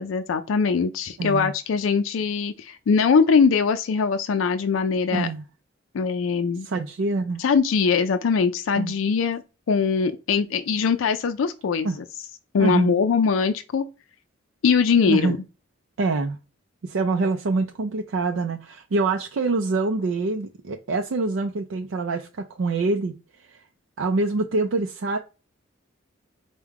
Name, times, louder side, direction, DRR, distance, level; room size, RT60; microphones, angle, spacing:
voice 1, 0.0-5.3 5.9-6.7 7.4-9.4 9.7-12.0 12.5-13.9 14.6-15.4, left 5 dB, 80° left, 0.4 m, -22 dB
voice 2, 1.2-1.5 5.1-5.4 6.6-7.4 8.8-8.9 11.8-12.0 12.6-13.0 15.0-15.4 16.0-16.4 16.8-23.1 23.5-23.6 24.0-25.2, right 3 dB, 80° right, 0.4 m, -25 dB
4.6 x 2.2 x 3.4 m
head